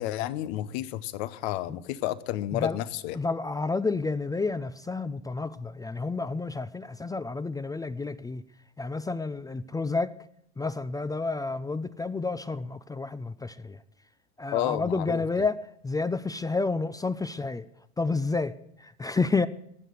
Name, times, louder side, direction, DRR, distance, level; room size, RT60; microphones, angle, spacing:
voice 1, 0.0-3.1 14.5-15.2, left 14 dB, 65° left, 1.1 m, -31 dB
voice 2, 3.1-8.4 8.8-10.1 10.6-13.8 14.4-17.7 18.0-19.5, left 3 dB, 10° left, 0.6 m, -30 dB
18.5 x 6.6 x 9.4 m
hypercardioid pair, 90°, 34 cm